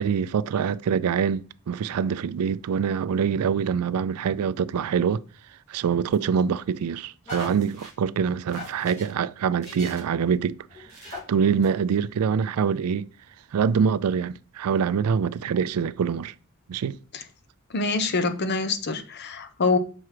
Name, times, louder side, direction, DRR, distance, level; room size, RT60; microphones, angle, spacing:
voice 1, 0.0-5.2 5.7-10.6 11.0-13.1 13.5-16.3 16.7-17.0, right 6 dB, 85° right, 0.4 m, -25 dB
sound 1, 6.1-6.6 7.3-7.9 8.5-9.1 9.6-10.2 10.7-11.2 11.6-11.7, left 1 dB, 30° left, 3.1 m, -40 dB
voice 2, 17.7-19.8, left 3 dB, 50° left, 0.7 m, -25 dB
5.9 x 4.5 x 4.8 m
head